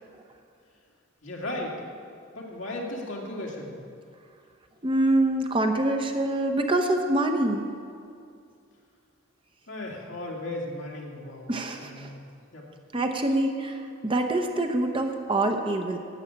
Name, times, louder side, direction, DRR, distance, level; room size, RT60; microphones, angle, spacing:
voice 1, 1.2-1.8 2.3-3.8 9.7-11.5 11.8-12.2 12.5-12.7, left 1 dB, 65° left, -2 dB, 2.4 m, -35 dB
voice 2, 4.8-7.7 11.5-12.1 12.9-16.0, right 1 dB, 25° right, 4 dB, 0.8 m, -25 dB
11.5 x 7.2 x 8.7 m, 2.4 s
head